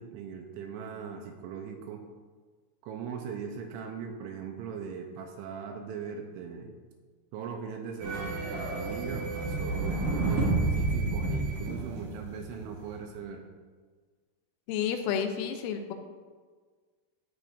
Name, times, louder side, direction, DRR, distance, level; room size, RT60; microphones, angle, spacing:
voice 1, 0.0-2.0 2.8-6.7 7.3-13.4, right 6 dB, 80° right, 3 dB, 3.0 m, -40 dB
sound 1, 8.0-12.8, right 3 dB, 55° right, 2.5 m, -30 dB
voice 2, 14.7-15.9, left 8 dB, 85° left, 6 dB, 3.3 m, -30 dB
13.0 x 9.0 x 2.6 m, 1.5 s
omnidirectional pair, 5.8 m